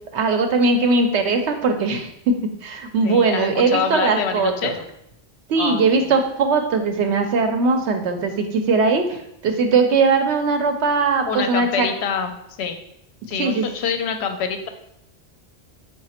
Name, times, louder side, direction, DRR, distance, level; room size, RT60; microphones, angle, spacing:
voice 1, 0.1-2.3 2.6-4.7 5.5-11.9 13.4-13.7, right 4 dB, 85° right, 5 dB, 0.9 m, -20 dB
voice 2, 3.0-4.8 5.6-6.1 11.3-12.3 12.6-12.8 13.3-14.7, left 6 dB, 75° left, 6 dB, 0.8 m, -26 dB
4.8 x 2.4 x 4.2 m, 0.76 s
omnidirectional pair, 1.1 m